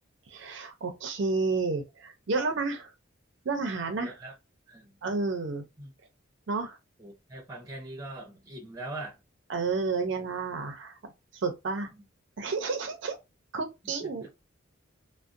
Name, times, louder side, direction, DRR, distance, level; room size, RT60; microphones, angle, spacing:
voice 1, 0.3-2.9 3.4-4.1 5.0-5.6 6.5-6.8 9.5-11.9 12.4-13.2 13.5-14.4, right 4 dB, 65° right, 0.5 m, -31 dB
voice 2, 4.0-4.3 4.7-5.0 5.8-5.9 7.0-9.2 11.9-12.0 13.8-14.3, right 2 dB, 20° right, 0.8 m, -42 dB
2.5 x 2.0 x 2.5 m
head